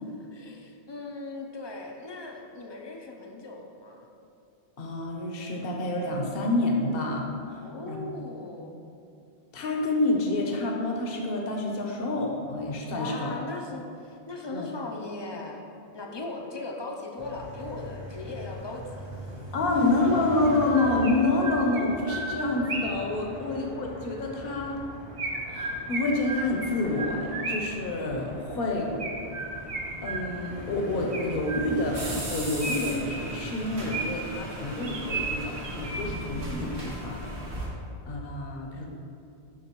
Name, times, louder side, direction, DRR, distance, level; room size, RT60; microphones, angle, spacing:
voice 1, 0.1-4.1 7.6-8.8 12.9-15.7 15.9-19.3 19.7-20.0 23.4-23.6, left 3 dB, 35° left, 1 dB, 0.4 m, -39 dB
voice 2, 4.8-8.0 9.5-13.4 14.5-14.7 19.5-24.8 25.5-28.9 30.0-32.0 32.3-37.3 38.1-38.9, left 2 dB, 65° left, 0 dB, 1.0 m, -28 dB
sound 1, 17.2-32.2, equal, 30° right, 0.8 m, -41 dB
Chirp tweet, 20.5-23.1 25.2-27.8 29.0-30.6 31.1-32.0 32.6-34.4 34.8-36.3, right 3 dB, 65° right, 1.0 m, -34 dB
sound 2, 31.9-37.7, right 1 dB, 85° right, 1.6 m, -37 dB
11.0 x 3.9 x 3.0 m, 2.6 s
omnidirectional pair, 1.1 m